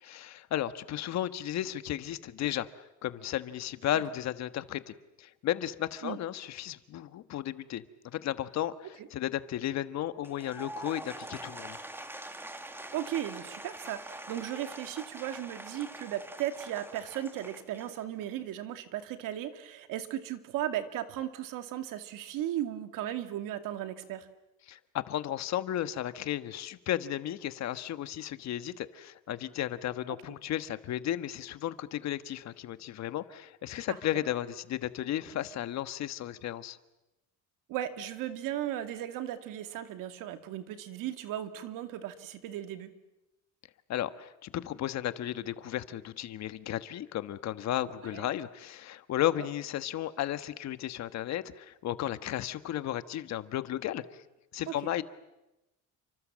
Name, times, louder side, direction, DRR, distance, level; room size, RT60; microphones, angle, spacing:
voice 1, 0.0-11.8 24.7-36.8 43.9-54.2 54.5-55.0, left 12 dB, 55° left, 12 dB, 1.4 m, -34 dB
Applause / Crowd, 10.2-18.4, right 1 dB, 5° right, 1.7 m, -44 dB
voice 2, 12.9-24.3 33.9-34.0 37.7-42.9 48.1-48.2 54.7-54.8, right 12 dB, 75° right, 8 dB, 2.5 m, -36 dB
30.0 x 25.5 x 7.5 m, 0.98 s
cardioid pair, 135°, 33 cm